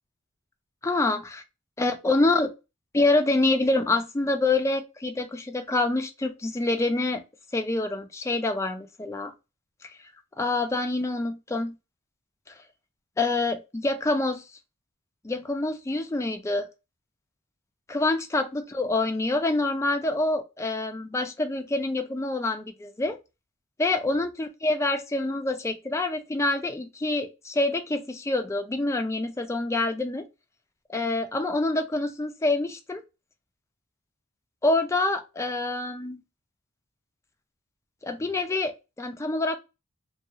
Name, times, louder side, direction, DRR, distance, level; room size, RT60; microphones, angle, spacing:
voice 1, 0.8-1.4 1.8-2.5 2.9-7.2 7.5-9.3 9.8-10.0 10.4-11.8 13.2-14.4 15.2-16.7 17.9-23.2 23.8-30.3 30.9-33.0 34.6-36.2 38.0-39.6, left 2 dB, 15° left, 0.3 m, -26 dB
2.3 x 2.3 x 2.8 m
head